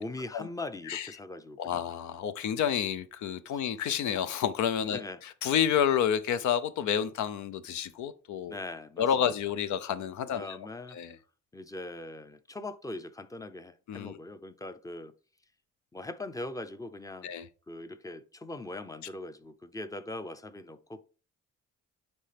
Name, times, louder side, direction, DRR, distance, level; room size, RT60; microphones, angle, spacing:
voice 1, 0.0-1.9 3.5-3.6 4.8-5.2 8.5-9.3 10.3-11.0 11.5-15.1 15.9-17.3 17.7-21.0, left 2 dB, 10° left, 0.6 m, -41 dB
voice 2, 1.6-5.0 5.4-8.6 9.0-10.6 10.9-11.1 13.9-14.2 17.2-17.5, left 9 dB, 75° left, 0.6 m, -29 dB
9.5 x 3.4 x 3.4 m
cardioid pair, 90°, 30 cm